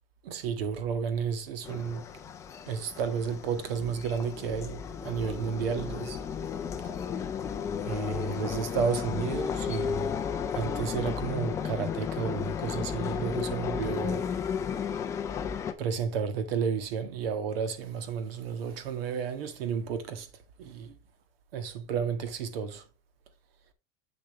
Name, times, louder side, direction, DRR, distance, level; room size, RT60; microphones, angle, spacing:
voice 1, 0.2-2.0 2.7-6.2 7.9-10.2 10.5-14.3 15.8-20.3 20.6-20.9 21.5-22.8, right 6 dB, 80° right, 1.9 m, -32 dB
sound 1, 1.6-15.7, left 7 dB, 10° left, 0.4 m, -34 dB
8.0 x 7.1 x 3.1 m
supercardioid pair, 180°, 29 cm